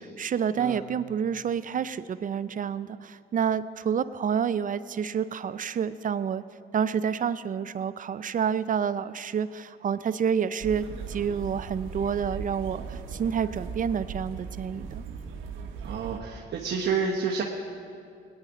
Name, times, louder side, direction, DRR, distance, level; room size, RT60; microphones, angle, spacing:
voice 1, 0.2-6.4 6.7-15.0, right 7 dB, 40° right, 15 dB, 0.4 m, -29 dB
sound 1, 10.6-16.2, right 5 dB, 85° right, 1.1 m, -38 dB
voice 2, 15.8-17.4, right 5 dB, 60° right, -1 dB, 1.1 m, -29 dB
19.0 x 9.9 x 5.0 m, 2.3 s
cardioid pair, 90°, 20 cm